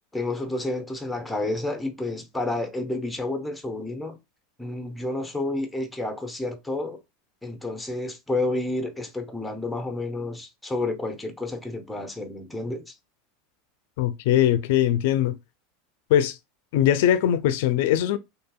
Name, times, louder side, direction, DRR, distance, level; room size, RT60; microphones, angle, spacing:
voice 1, 0.1-4.2 4.6-7.0 7.4-12.9, left 2 dB, 5° left, 0.6 m, -30 dB
voice 2, 14.0-15.4 16.1-16.4 16.7-18.2, left 11 dB, 70° left, 0.4 m, -21 dB
2.7 x 2.6 x 2.3 m
supercardioid pair, 120°, 0 cm